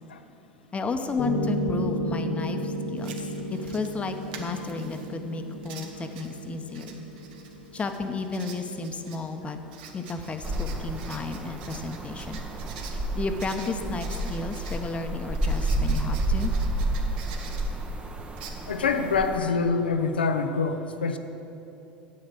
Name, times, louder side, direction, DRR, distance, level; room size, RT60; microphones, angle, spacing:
voice 1, 0.7-7.0 7.7-9.6 9.9-12.4 12.9-16.5, left 3 dB, 25° left, 6 dB, 1.0 m, -33 dB
Piano, 1.2-9.2, equal, 65° left, 1.6 m, -33 dB
Writing, 3.0-19.3, right 5 dB, 70° right, 1.3 m, -47 dB
sound 1, 10.4-19.4, right 1 dB, 20° right, 1.0 m, -30 dB
voice 2, 18.7-21.2, left 4 dB, 90° left, 8 dB, 0.7 m, -25 dB
9.5 x 7.8 x 6.9 m, 3.0 s
hypercardioid pair, 85°, 5 cm